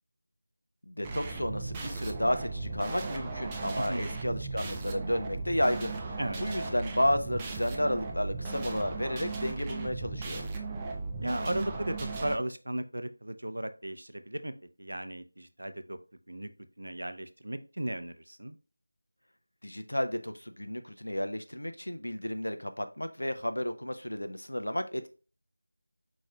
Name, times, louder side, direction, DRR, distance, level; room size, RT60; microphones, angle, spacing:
voice 1, 0.9-10.4 19.6-25.1, left 1 dB, 75° left, 9 dB, 0.6 m, -32 dB
sound 1, 1.0-12.4, right 3 dB, 10° right, 0.4 m, -37 dB
voice 2, 3.8-4.1 6.2-6.4 11.2-14.5 14.8-16.0 16.3-16.5 16.8-18.6, right 1 dB, 65° right, 10 dB, 0.5 m, -35 dB
4.7 x 4.2 x 2.2 m, 0.35 s
figure-of-eight pair, 165°, 0 cm